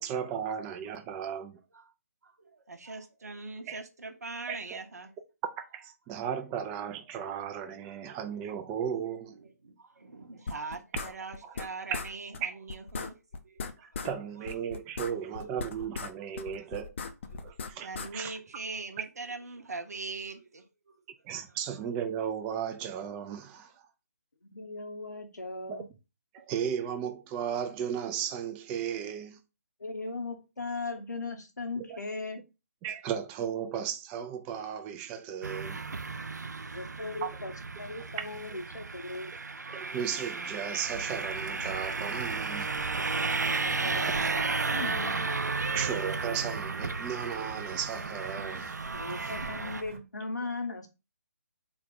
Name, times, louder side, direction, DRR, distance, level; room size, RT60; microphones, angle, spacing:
voice 1, 0.0-1.6 3.7-3.8 4.5-4.8 5.7-9.4 11.4-11.5 12.4-12.5 13.8-16.9 17.4-17.9 18.1-18.3 21.2-23.7 25.7-25.8 26.3-29.4 31.8-32.0 32.8-35.8 37.2-37.3 39.7-42.7 45.0-45.1 45.7-48.7, right 8 dB, 15° right, 0.3 m, -35 dB
voice 2, 2.2-5.2 7.8-8.1 9.3-13.2 13.4-14.1 14.4-14.5 15.1-15.5 16.4-16.5 17.3-21.0, right 3 dB, 70° right, 0.8 m, -42 dB
sound 1, 10.5-11.7 11.9-12.1 12.3-12.4 12.7-14.1 14.5-16.1 16.4-18.1, left 4 dB, 45° left, 0.5 m, -38 dB
voice 3, 24.4-25.8 29.8-32.4 36.6-39.3 43.1-45.3 48.9-50.9, left 3 dB, 85° left, 0.9 m, -38 dB
sound 2, 35.4-49.8, right 4 dB, 90° right, 0.4 m, -33 dB
Wind / Thunder / Rain, 41.7-50.0, right 5 dB, 45° right, 0.9 m, -45 dB
3.9 x 2.3 x 3.7 m
figure-of-eight pair, 145°, 9 cm